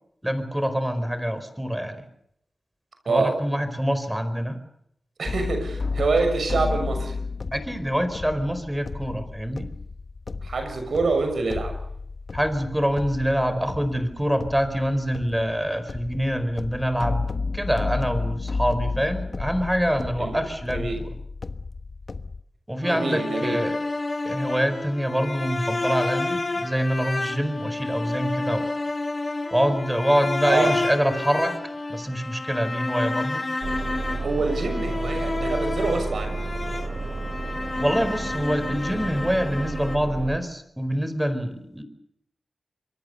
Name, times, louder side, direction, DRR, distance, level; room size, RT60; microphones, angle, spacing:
voice 1, 0.2-2.0 3.0-4.6 7.5-9.7 12.3-17.3 17.5-21.1 22.7-23.8 24.2-28.7 29.5-31.5 31.9-33.4 37.8-41.8, equal, 5° right, 9 dB, 4.7 m, -25 dB
voice 2, 3.0-3.3 5.2-7.1 10.4-11.7 20.2-20.4 20.7-21.0 22.8-23.6 30.4-30.7 34.2-36.4, right 3 dB, 80° right, 5 dB, 6.6 m, -25 dB
sound 1, 5.2-22.4, left 4 dB, 55° left, 1.3 m, -32 dB
sound 2, 22.8-40.0, left 2 dB, 35° left, 1.6 m, -30 dB
sound 3, 33.6-40.4, right 2 dB, 60° right, 4.3 m, -32 dB
26.5 x 23.0 x 6.9 m, 0.73 s
wide cardioid pair, 70°, 0 cm